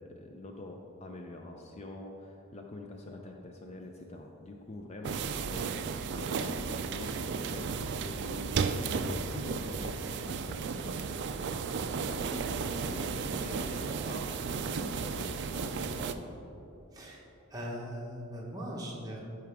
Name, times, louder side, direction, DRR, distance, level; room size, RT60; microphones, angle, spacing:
voice 1, 0.0-11.1 11.9-14.3 14.8-16.3, left 2 dB, 30° left, 2 dB, 0.5 m, -45 dB
sound 1, 5.0-16.1, right 5 dB, 55° right, 0.4 m, -34 dB
voice 2, 16.9-17.2 17.5-19.2, equal, 15° right, -3 dB, 1.2 m, -40 dB
12.0 x 4.8 x 3.5 m, 2.8 s
head